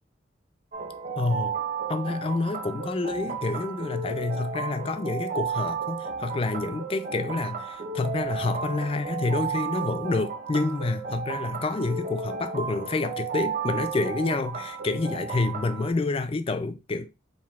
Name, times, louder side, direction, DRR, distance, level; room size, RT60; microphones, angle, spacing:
sound 1, 0.7-15.9, right 5 dB, 40° right, 0.6 m, -33 dB
voice 1, 1.1-1.6 1.9-17.1, left 3 dB, 30° left, 0.4 m, -28 dB
4.6 x 3.6 x 2.3 m
head